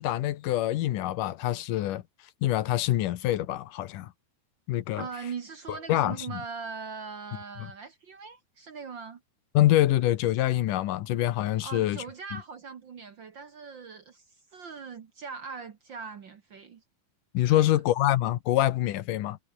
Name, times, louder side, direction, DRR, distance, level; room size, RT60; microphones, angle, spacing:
voice 1, 0.0-2.0 2.4-4.1 4.7-5.1 5.9-6.4 7.6-7.7 9.5-12.0 17.3-19.4, left 14 dB, 75° left, 2.5 m, -25 dB
voice 2, 5.0-9.2 11.6-16.8 17.5-17.7, right 5 dB, 55° right, 1.3 m, -40 dB
omnidirectional pair, 4.0 m